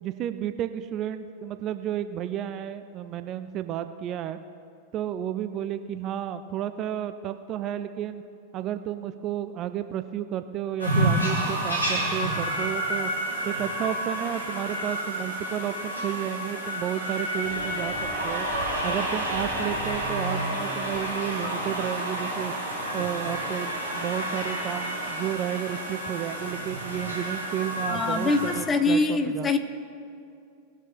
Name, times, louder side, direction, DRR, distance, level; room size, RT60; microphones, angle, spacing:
voice 1, 0.0-4.4 4.9-8.2 8.5-13.1 13.5-17.9 18.2-18.5 18.8-22.5 22.9-29.5, right 11 dB, 35° right, 10 dB, 0.4 m, -32 dB
sound 1, 10.8-28.6, right 1 dB, 80° left, 2.0 m, -30 dB
sound 2, 17.4-25.2, equal, 45° left, 1.7 m, -43 dB
voice 2, 27.9-29.6, left 3 dB, 20° left, 9 dB, 0.7 m, -24 dB
19.0 x 6.4 x 3.8 m, 2.5 s
figure-of-eight pair, 90°, 0 cm